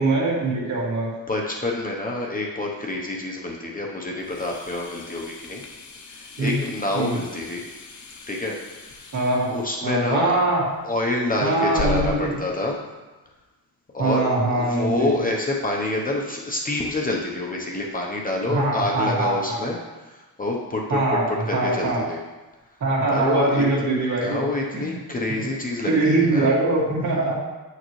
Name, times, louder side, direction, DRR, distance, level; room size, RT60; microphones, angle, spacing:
voice 1, 0.0-1.1 6.4-6.5 6.9-7.1 9.1-9.5 9.8-10.6 11.4-12.3 14.0-14.9 18.5-19.7 20.9-21.3 21.5-22.0 22.8-24.4 24.7-25.0 25.8-27.3, right 2 dB, 50° right, -4 dB, 2.3 m, -22 dB
voice 2, 1.3-5.6 6.1-7.6 8.3-8.6 9.5-10.3 10.8-12.8 13.9-19.8 20.0-22.2 23.1-23.6 24.2-26.5, left 2 dB, 25° left, -1 dB, 0.8 m, -27 dB
sound 1, 4.2-12.4, left 2 dB, 50° left, 0.9 m, -37 dB
9.5 x 6.7 x 3.2 m, 1.2 s
wide cardioid pair, 155°, 36 cm